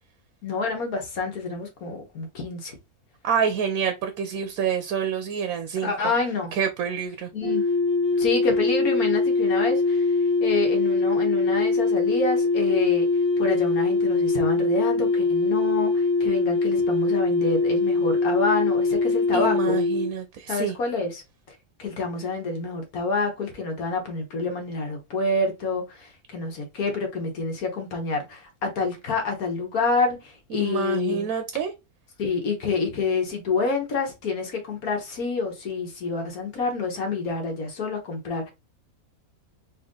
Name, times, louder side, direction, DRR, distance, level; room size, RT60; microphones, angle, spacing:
voice 1, 0.4-2.7 5.8-6.5 7.3-7.6 8.2-10.1 10.4-13.1 13.4-19.8 20.5-21.2 21.5-31.3 32.2-38.5, left 3 dB, 70° left, 1.6 m, -28 dB
voice 2, 3.2-5.9 6.5-7.3 19.3-20.8 30.5-31.7, right 7 dB, 75° right, 1.1 m, -27 dB
sound 1, 7.4-20.1, left 3 dB, 10° left, 0.6 m, -22 dB
4.2 x 2.6 x 3.7 m
omnidirectional pair, 1.6 m